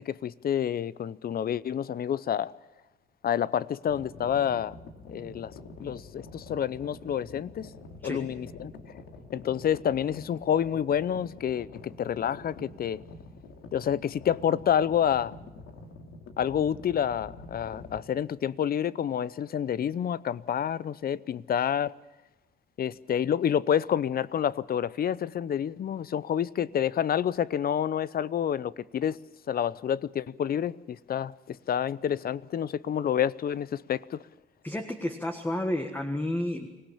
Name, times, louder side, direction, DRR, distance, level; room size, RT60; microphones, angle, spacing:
voice 1, 0.0-2.5 3.2-4.8 5.1-5.5 5.8-7.7 8.0-8.7 9.3-13.0 13.7-15.3 16.4-21.9 22.8-29.2 29.5-34.2, left 9 dB, 50° left, 0.6 m, -28 dB
sound 1, 3.9-18.0, left 3 dB, 90° left, 2.4 m, -47 dB
voice 2, 34.6-36.7, left 1 dB, 10° left, 1.5 m, -31 dB
25.0 x 17.5 x 7.2 m
cardioid pair, 90°, 20 cm